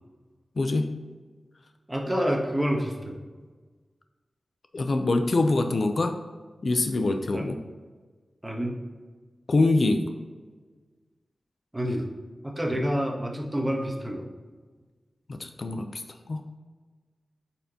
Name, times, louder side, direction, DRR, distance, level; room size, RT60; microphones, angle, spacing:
voice 1, 0.6-0.9 4.7-6.1 6.6-7.6 9.5-10.0 12.7-12.9 15.3-16.0 16.3-16.6, left 2 dB, 60° left, 6 dB, 0.6 m, -24 dB
voice 2, 1.9-3.2 7.3-7.4 8.4-8.8 11.7-12.1 12.4-14.3, equal, 15° right, 2 dB, 1.2 m, -28 dB
8.9 x 4.3 x 2.9 m, 1.4 s
wide cardioid pair, 70°, 0 cm